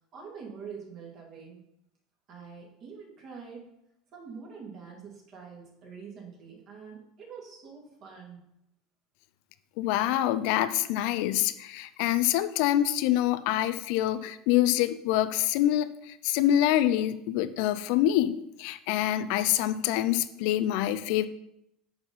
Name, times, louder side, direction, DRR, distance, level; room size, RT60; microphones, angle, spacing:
voice 1, 0.1-1.6 2.3-3.6 4.1-8.4, right 6 dB, 50° right, -2 dB, 2.8 m, -45 dB
voice 2, 9.8-21.3, left 13 dB, 60° left, 13 dB, 0.4 m, -26 dB
6.8 x 5.6 x 5.6 m, 0.79 s
figure-of-eight pair, 70°, 0 cm